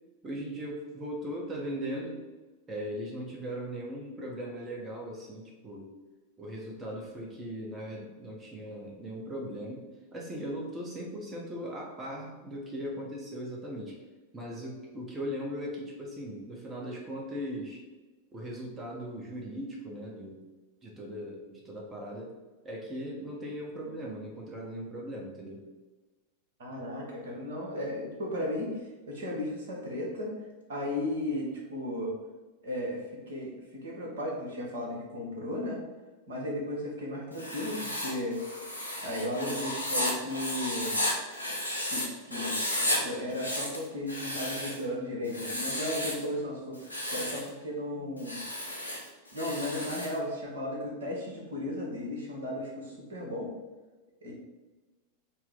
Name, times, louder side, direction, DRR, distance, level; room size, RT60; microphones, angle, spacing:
voice 1, 0.2-2.2 2.7-5.9 6.4-9.8 10.1-14.0 14.3-17.8 18.3-20.5 20.8-22.3 22.6-25.6, equal, 20° right, -2 dB, 0.7 m, -38 dB
voice 2, 26.6-28.7 29.1-30.3 30.7-32.1 32.6-35.8 36.3-38.4 39.0-41.0 41.9-46.8 47.1-48.4 49.3-53.5 54.2-54.3, left 1 dB, 60° right, -2 dB, 1.1 m, -35 dB
Writing, 37.3-42.1 42.3-43.0 43.3-44.8 45.3-46.2 46.7-47.5 48.2-50.2, left 1 dB, 85° left, 0.7 m, -33 dB
4.2 x 2.1 x 3.8 m, 1.2 s
figure-of-eight pair, 90°, 0 cm